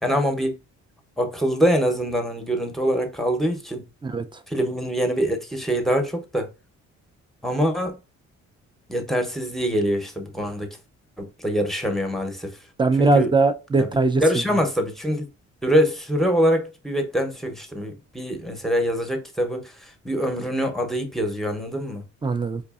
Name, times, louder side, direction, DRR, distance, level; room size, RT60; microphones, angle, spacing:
voice 1, 0.0-0.5 1.2-3.9 4.5-6.5 7.4-8.0 8.9-10.7 11.2-12.6 12.9-13.3 13.8-13.9 14.2-15.3 15.6-22.0, equal, ahead, 0.8 m, -24 dB
voice 2, 12.8-14.2 22.2-22.6, right 3 dB, 15° right, 0.4 m, -20 dB
4.7 x 2.5 x 2.4 m
cardioid pair, 90°, 30 cm